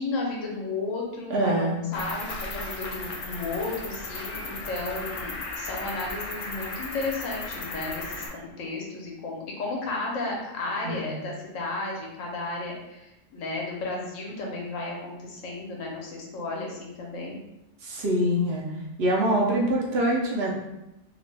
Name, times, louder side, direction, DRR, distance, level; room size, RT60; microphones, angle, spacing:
voice 1, 0.0-17.4, left 3 dB, 85° left, -2 dB, 1.1 m, -33 dB
voice 2, 1.3-1.9 10.8-11.1 17.8-18.7 19.0-20.5, right 1 dB, 60° right, -3 dB, 0.7 m, -24 dB
Cricket, 1.9-8.3, left 2 dB, 65° left, 0.4 m, -36 dB
2.8 x 2.1 x 3.2 m, 0.92 s
omnidirectional pair, 1.3 m